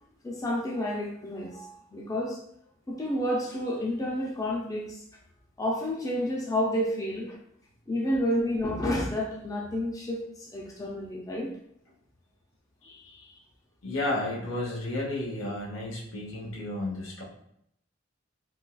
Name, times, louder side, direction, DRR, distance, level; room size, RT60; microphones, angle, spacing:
voice 1, 0.2-2.4 2.9-5.0 5.6-7.4 7.9-11.5, left 1 dB, 20° left, -1 dB, 0.4 m, -30 dB
voice 2, 12.8-13.3 13.8-17.2, left 1 dB, 85° left, -2 dB, 0.9 m, -33 dB
3.8 x 2.3 x 2.3 m, 0.73 s
head